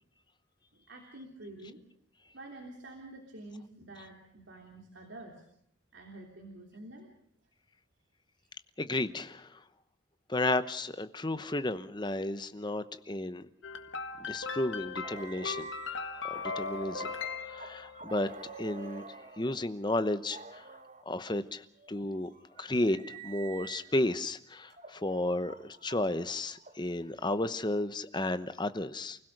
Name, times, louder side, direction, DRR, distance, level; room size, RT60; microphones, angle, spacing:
voice 1, 0.7-1.8 2.3-5.4 5.9-7.1 8.4-8.5, right 2 dB, 75° right, 1 dB, 3.3 m, -48 dB
voice 2, 8.8-9.6 10.3-13.4 14.2-15.7 16.2-17.1 17.4-19.1 19.4-20.6 21.1-22.3 22.6-29.2, left 1 dB, 25° left, 12 dB, 0.9 m, -33 dB
sound 1, 13.6-18.3, left 5 dB, 75° left, 1.7 m, -39 dB
sound 2, 15.0-19.6 20.3-21.0 21.8-24.2 24.7-27.1, right 4 dB, 40° right, 1.6 m, -48 dB
29.0 x 16.5 x 6.6 m, 0.70 s
head